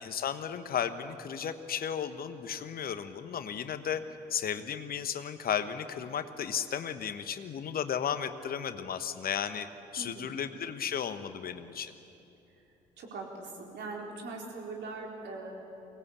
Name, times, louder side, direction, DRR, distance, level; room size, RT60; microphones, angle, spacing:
voice 1, 0.0-4.0 4.3-9.7 9.9-11.9, left 8 dB, 45° left, 11 dB, 1.2 m, -34 dB
voice 2, 13.0-15.5, right 3 dB, 55° right, 0 dB, 4.4 m, -41 dB
24.0 x 18.5 x 8.4 m, 2.8 s
figure-of-eight pair, 50°, 21 cm